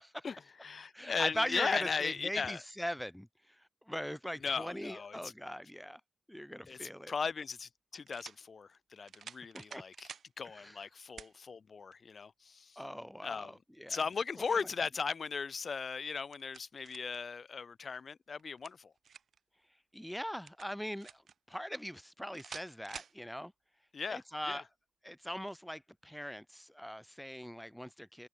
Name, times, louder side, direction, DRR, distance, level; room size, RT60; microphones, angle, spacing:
voice 1, 0.2-2.6 4.4-5.3 6.7-10.1 10.4-12.8 13.2-13.6 13.9-18.9 23.9-24.6, left 5 dB, 50° left, 4.9 m, -37 dB
voice 2, 0.9-3.3 3.9-6.0 6.3-7.1 9.5-9.8 10.5-10.8 12.8-14.0 14.5-14.6 19.9-21.2 21.5-23.5 24.1-24.6 25.0-28.3, equal, ahead, 5.5 m, -40 dB
sound 1, 6.8-6.9 8.1-8.4 9.1-10.3 11.2-11.3 11.9-12.0 13.9-14.7 16.0-17.2 18.4-19.4 20.5-21.3 22.3-23.2, right 7 dB, 65° right, 5.4 m, -50 dB
wide cardioid pair, 125°, 0 cm